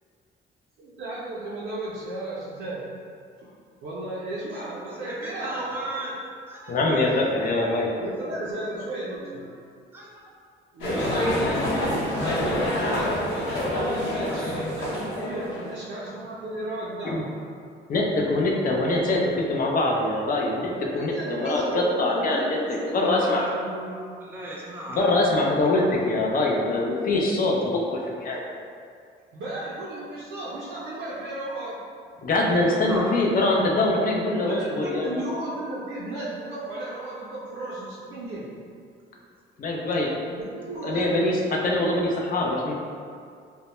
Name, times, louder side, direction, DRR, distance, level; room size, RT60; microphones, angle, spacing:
voice 1, 0.8-2.9 3.4-3.5 3.8-5.7 8.0-9.4 10.7-17.3 20.8-24.0 29.3-31.8 34.4-38.5 40.3-41.2, right 1 dB, 80° right, -8 dB, 0.5 m, -34 dB
voice 2, 5.0-6.2 6.5-7.9 8.8-9.6 9.9-10.2 23.2-23.5 24.2-25.1 25.8-26.1 29.9-30.0 32.6-33.2, right 1 dB, 10° right, -4 dB, 0.4 m, -38 dB
voice 3, 6.7-7.9 17.0-17.2 17.9-22.4 22.7-23.4 24.9-28.4 32.2-35.2 39.6-40.1 40.8-42.7, left 2 dB, 45° left, -1 dB, 0.5 m, -23 dB
sound 1, 10.8-15.7, left 1 dB, 80° left, 0.9 m, -27 dB
2.1 x 2.1 x 2.9 m, 2.2 s
cardioid pair, 90°, 20 cm